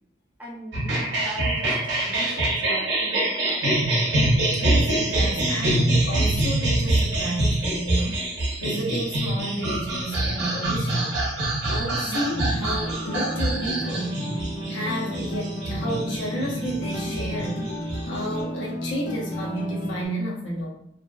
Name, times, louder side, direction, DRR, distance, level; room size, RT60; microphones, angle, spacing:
voice 1, 0.4-3.6, right 1 dB, 10° right, -5 dB, 0.5 m, -40 dB
sound 1, 0.7-18.4, right 1 dB, 70° right, 0.6 m, -25 dB
voice 2, 4.5-14.2 14.7-17.6 18.0-20.7, equal, 85° left, -2 dB, 0.6 m, -31 dB
sound 2, 12.1-20.1, equal, 40° left, 0.5 m, -32 dB
2.5 x 2.2 x 2.2 m, 0.71 s
head